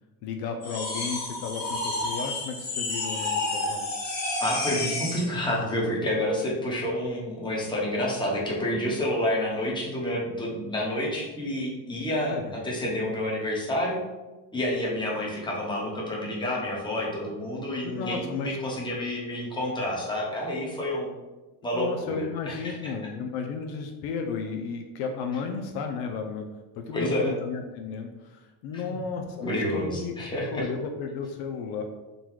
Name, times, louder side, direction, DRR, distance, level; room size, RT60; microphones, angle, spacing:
voice 1, 0.2-3.9 12.3-12.5 17.8-18.6 21.7-26.5 26.8-30.1 30.5-31.8, left 5 dB, 70° left, 4 dB, 0.6 m, -33 dB
sound 1, 0.6-5.3, left 2 dB, 40° left, 1.5 m, -30 dB
voice 2, 4.4-14.0 14.5-21.1 21.6-22.7 26.9-27.3 28.7-29.0 29.4-30.7, left 1 dB, 10° left, -4 dB, 1.0 m, -29 dB
3.9 x 2.3 x 4.5 m, 1.1 s
cardioid pair, 140°, 40 cm